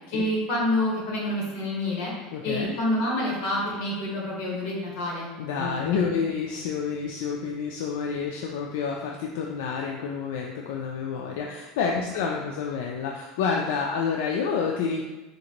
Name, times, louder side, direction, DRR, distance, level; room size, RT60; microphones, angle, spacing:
voice 1, 0.1-2.1 2.4-5.3 5.6-6.1, left 1 dB, 55° left, -3 dB, 1.2 m, -28 dB
voice 2, 2.3-2.8 5.4-15.0, left 6 dB, 80° left, 0 dB, 0.3 m, -29 dB
4.0 x 2.5 x 2.9 m, 1.1 s
cardioid pair, 170°, 0 cm